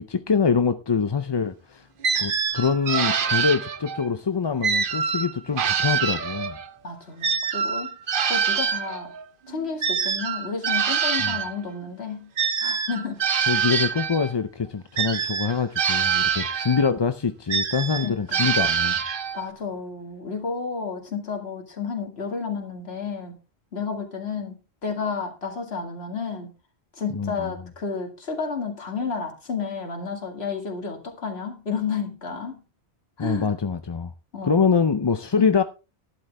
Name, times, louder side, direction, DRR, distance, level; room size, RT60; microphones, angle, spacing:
voice 1, 0.0-1.9 2.2-6.6 11.2-11.3 13.5-19.0 27.1-27.3 33.2-34.1 34.4-35.6, left 5 dB, 35° left, 0.4 m, -24 dB
sound 1, 2.0-4.1 4.6-6.7 7.2-11.6 12.4-14.3 15.0-16.9 17.5-19.5, right 7 dB, 55° right, 1.0 m, -25 dB
voice 2, 6.8-7.9 8.2-9.1 9.5-12.3 12.6-13.3 18.0-18.5 19.3-23.4 23.7-24.6 24.8-26.5 26.9-32.6 33.2-33.5 34.3-34.8 35.4-35.6, left 5 dB, 70° left, 2.3 m, -31 dB
12.0 x 11.0 x 3.4 m
omnidirectional pair, 1.1 m